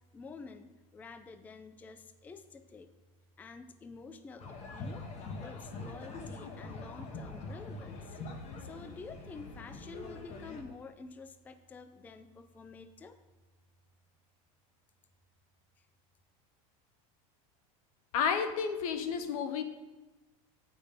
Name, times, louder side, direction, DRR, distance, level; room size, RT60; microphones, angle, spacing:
voice 1, 0.1-2.9 3.4-5.0 5.4-8.2 8.6-13.2, left 4 dB, 10° left, 11 dB, 0.3 m, -49 dB
sound 1, 4.4-10.6, left 3 dB, 40° left, 1.1 m, -44 dB
voice 2, 18.1-19.6, left 7 dB, 85° left, 9 dB, 0.9 m, -31 dB
9.5 x 4.3 x 5.0 m, 1.1 s
supercardioid pair, 140°, 18 cm